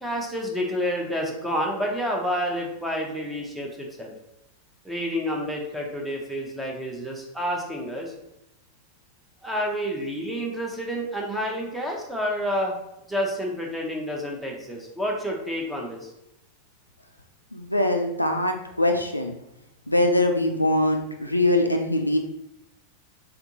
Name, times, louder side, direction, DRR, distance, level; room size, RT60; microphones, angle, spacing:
voice 1, 0.0-4.1 4.8-8.1 9.4-12.8 13.1-16.0, equal, 5° right, -1 dB, 0.8 m, -29 dB
voice 2, 17.5-19.4 19.9-22.2, left 1 dB, 85° left, 3 dB, 0.4 m, -22 dB
3.5 x 3.5 x 2.9 m, 0.84 s
figure-of-eight pair, 90°, 0 cm